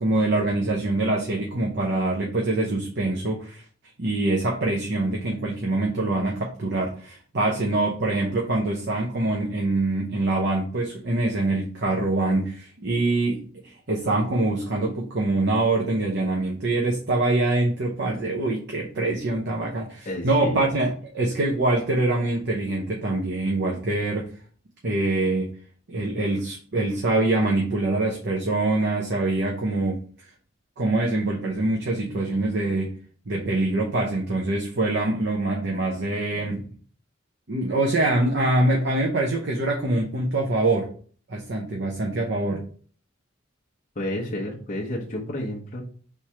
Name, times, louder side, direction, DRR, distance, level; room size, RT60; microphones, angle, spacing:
voice 1, 0.0-3.6 4.0-24.3 24.8-25.5 25.9-30.0 30.8-32.9 33.3-36.7 37.5-40.9 41.3-42.6, right 2 dB, 60° right, -1 dB, 0.8 m, -24 dB
voice 2, 20.1-20.7 44.0-45.8, left 1 dB, 40° left, -2 dB, 0.8 m, -31 dB
3.5 x 3.2 x 4.2 m, 0.43 s
head